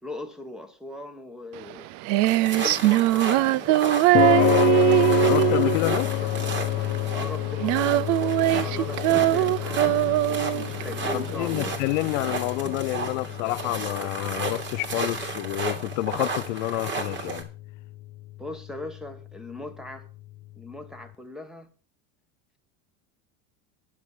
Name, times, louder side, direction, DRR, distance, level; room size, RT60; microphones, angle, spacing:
voice 1, 0.0-1.9 2.5-3.8 7.1-11.8 18.4-20.1 20.6-21.7, left 1 dB, ahead, 1.4 m, -39 dB
Female singing, 1.6-12.5, right 18 dB, 50° right, 0.5 m, -22 dB
sound 1, 2.3-17.4, right 3 dB, 30° right, 2.7 m, -33 dB
sound 2, 4.1-20.7, left 17 dB, 30° left, 0.4 m, -30 dB
voice 2, 4.2-4.7 5.2-6.1 11.1-17.5, left 20 dB, 85° left, 0.5 m, -29 dB
10.5 x 7.0 x 7.4 m
cardioid pair, 155°, 37 cm